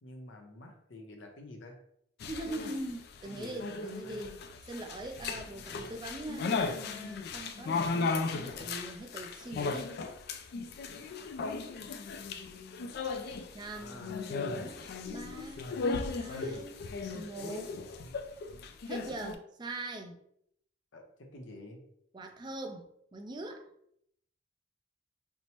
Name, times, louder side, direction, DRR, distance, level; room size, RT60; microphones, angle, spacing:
voice 1, 0.0-1.8 3.2-4.2 5.6-5.9 13.8-14.5 17.4-17.7 20.9-21.8, left 1 dB, 75° left, 3 dB, 0.7 m, -48 dB
sound 1, 2.2-19.3, left 4 dB, 55° left, 0.3 m, -36 dB
voice 2, 2.3-4.4 4.7-10.0 13.5-15.7 16.1-16.8 17.1-17.7 18.9-20.2 22.1-23.6, right 1 dB, 25° right, 4 dB, 0.4 m, -42 dB
4.4 x 2.0 x 2.9 m, 0.73 s
head